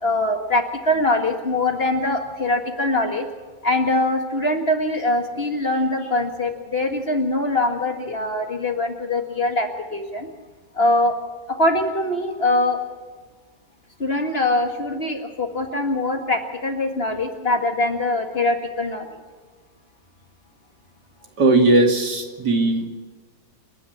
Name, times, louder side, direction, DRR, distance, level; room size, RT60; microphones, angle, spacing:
voice 1, 0.0-3.3 3.6-10.3 10.8-11.1 11.5-12.8 14.0-19.2, left 2 dB, 35° left, 4 dB, 2.0 m, -23 dB
voice 2, 21.4-22.9, right 2 dB, 65° right, 3 dB, 2.9 m, -18 dB
28.5 x 10.0 x 10.0 m, 1.4 s
omnidirectional pair, 1.9 m